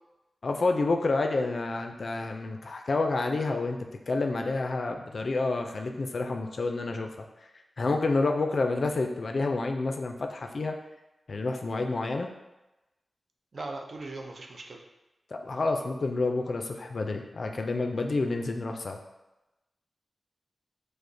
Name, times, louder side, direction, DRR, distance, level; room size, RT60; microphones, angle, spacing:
voice 1, 0.4-7.1 7.8-10.8 11.3-12.3 15.3-19.0, left 3 dB, 55° left, 4 dB, 0.3 m, -29 dB
voice 2, 13.5-14.8, right 2 dB, 50° right, 2 dB, 0.4 m, -39 dB
4.9 x 2.0 x 2.6 m, 0.99 s
wide cardioid pair, 135°, 0 cm